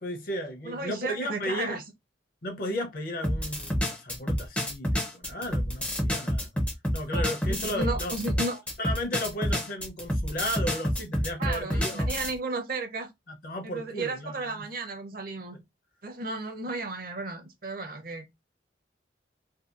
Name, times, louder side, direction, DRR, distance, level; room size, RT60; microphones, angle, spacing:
voice 1, 0.0-1.8 2.4-6.5 6.9-8.1 8.8-12.1 13.3-14.6 15.5-15.6, left 1 dB, 50° left, 0.6 m, -34 dB
voice 2, 0.6-1.8 7.1-8.6 11.4-13.1 13.6-15.6 16.0-18.2, right 3 dB, 50° right, 0.6 m, -34 dB
sound 1, 3.2-12.3, equal, 5° left, 0.4 m, -28 dB
2.7 x 2.3 x 2.4 m
head